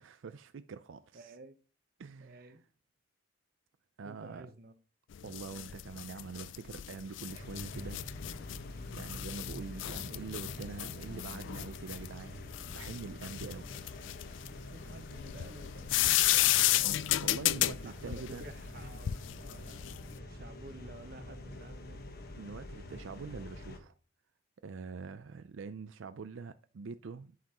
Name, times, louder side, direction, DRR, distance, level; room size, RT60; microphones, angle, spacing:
voice 1, 0.0-1.3 2.0-2.5 4.0-4.5 5.2-8.0 8.9-13.9 16.6-18.5 22.4-24.0 24.6-27.3, right 5 dB, 85° right, 0.4 m, -45 dB
voice 2, 1.1-1.6 2.2-2.6 4.0-4.7 5.2-5.8 13.4-14.0 14.7-16.4 17.8-22.1, right 2 dB, 50° right, 0.9 m, -52 dB
sound 1, 5.1-20.1, left 14 dB, 75° left, 0.4 m, -33 dB
sound 2, 7.3-23.8, left 1 dB, 50° left, 1.3 m, -46 dB
9.2 x 7.5 x 3.0 m
head